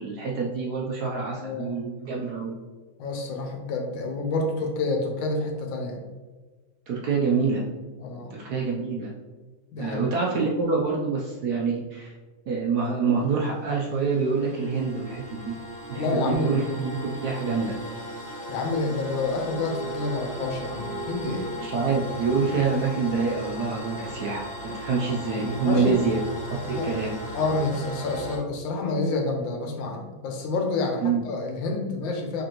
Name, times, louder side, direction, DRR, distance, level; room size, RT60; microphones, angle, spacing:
voice 1, 0.0-2.5 6.9-7.6 8.3-9.1 9.8-12.1 12.5-15.5 15.9-17.8 21.6-26.2 26.7-27.1 31.0-31.2, right 4 dB, 70° right, -2 dB, 0.9 m, -26 dB
voice 2, 1.4-1.8 3.0-6.0 8.0-8.3 9.7-10.1 16.0-16.5 18.5-21.5 25.7-25.9 26.7-26.9 27.3-32.4, left 3 dB, 75° left, 2 dB, 1.4 m, -28 dB
sound 1, 13.2-28.4, equal, 40° left, 1.1 m, -37 dB
5.0 x 3.6 x 2.9 m, 1.3 s
omnidirectional pair, 2.2 m